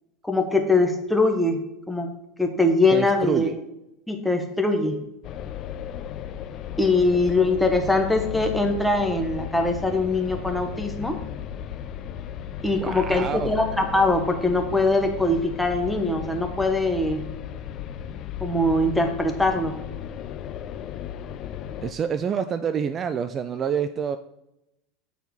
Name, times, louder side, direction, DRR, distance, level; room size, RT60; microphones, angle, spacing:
voice 1, 0.2-1.6 1.9-2.1 2.4-3.5 4.1-5.0 6.8-11.2 12.6-17.2 18.4-19.8, left 2 dB, 5° left, 4 dB, 1.1 m, -22 dB
voice 2, 2.9-3.6 12.8-13.5 21.8-24.2, right 7 dB, 30° right, 10 dB, 0.3 m, -27 dB
sound 1, 5.2-21.9, left 9 dB, 45° left, 0.4 m, -35 dB
8.0 x 4.5 x 3.9 m, 0.86 s
figure-of-eight pair, 80°, 0 cm